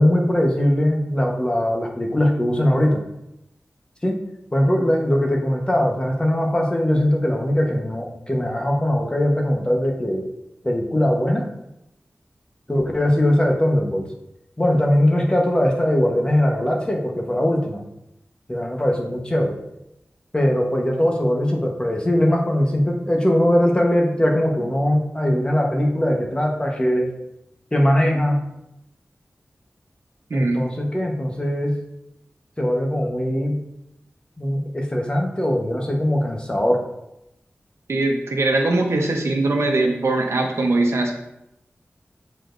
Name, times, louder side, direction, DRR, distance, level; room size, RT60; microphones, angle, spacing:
voice 1, 0.0-3.0 4.0-4.2 4.5-10.3 10.6-11.5 12.7-14.1 14.6-17.8 18.5-19.6 20.3-27.1 27.7-28.4 30.3-31.8 32.6-33.6 34.4-36.8, left 1 dB, 20° left, 0 dB, 1.1 m, -20 dB
voice 2, 30.3-30.7 37.9-41.1, right 2 dB, 85° right, 2 dB, 0.9 m, -21 dB
8.9 x 4.2 x 2.6 m, 0.86 s
wide cardioid pair, 65°, 4 cm